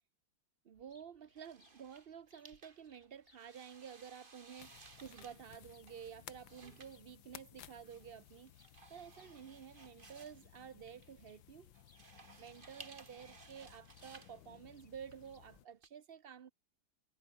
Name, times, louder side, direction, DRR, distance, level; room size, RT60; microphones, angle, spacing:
voice 1, 0.6-8.5 8.9-11.7 12.4-16.5, right 8 dB, 70° right, 0.5 m, -52 dB
sound 1, 0.7-15.4, left 2 dB, 30° left, 4.0 m, -74 dB
sound 2, 1.4-15.9, right 3 dB, 25° right, 2.2 m, -60 dB
sound 3, 4.6-15.7, left 14 dB, 80° left, 1.5 m, -59 dB
omnidirectional pair, 2.1 m